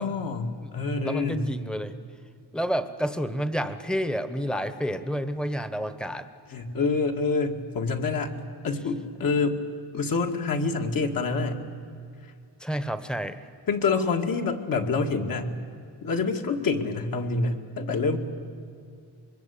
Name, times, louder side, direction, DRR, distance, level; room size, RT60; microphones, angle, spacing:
voice 1, 0.0-1.5 6.5-8.3 8.6-9.6 9.9-11.6 13.7-15.5 16.0-18.2, left 4 dB, 55° left, 3 dB, 2.2 m, -27 dB
voice 2, 1.0-2.0 2.5-6.3 12.6-13.5, equal, ahead, 12 dB, 1.1 m, -29 dB
25.5 x 22.5 x 8.6 m, 2.4 s
wide cardioid pair, 150°, 41 cm